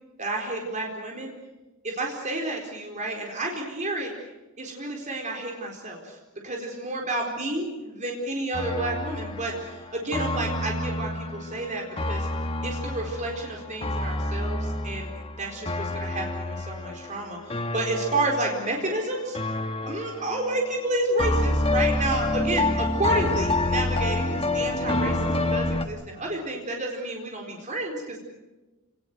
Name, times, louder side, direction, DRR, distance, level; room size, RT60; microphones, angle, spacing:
voice 1, 0.2-1.3 1.8-4.1 4.6-6.2 6.4-12.3 12.6-15.1 15.4-19.4 19.9-28.2, right 2 dB, 35° right, 1 dB, 4.3 m, -30 dB
sound 1, 8.5-19.0 19.3-20.8 21.2-25.8, left 2 dB, 25° left, 1.5 m, -28 dB
28.5 x 19.0 x 8.0 m, 1.1 s
head